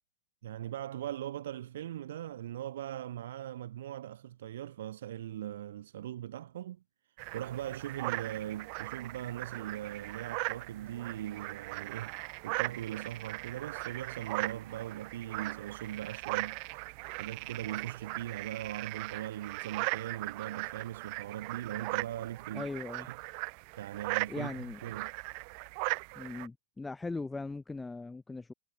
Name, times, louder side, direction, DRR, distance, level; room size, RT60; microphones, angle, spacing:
voice 1, 0.4-6.8 7.3-12.1 12.4-16.8 17.1-22.7 23.0-23.2 23.8-24.5 24.8-25.1, right 12 dB, 70° right, 0.8 m, -40 dB
sound 1, 7.2-26.5, right 40 dB or more, 45° right, 0.6 m, -39 dB
voice 2, 22.5-23.1 24.3-24.8 26.2-28.5, left 3 dB, 5° left, 0.7 m, -39 dB
supercardioid pair, 150°, 0 cm